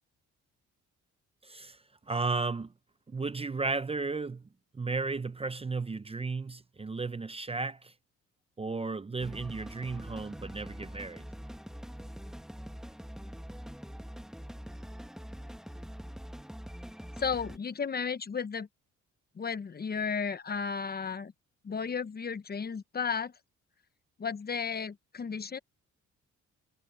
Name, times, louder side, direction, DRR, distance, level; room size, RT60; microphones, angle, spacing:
voice 1, 1.4-1.8 2.1-2.7 3.1-4.4 4.7-7.9 8.6-11.3, right 3 dB, 20° right, 0.7 m, -34 dB
sound 1, 9.2-17.6, equal, ahead, 1.8 m, -44 dB
voice 2, 17.2-18.7 19.4-21.3 21.6-23.3 24.2-25.6, left 6 dB, 30° left, 0.9 m, -34 dB
cardioid pair, 90°, 30 cm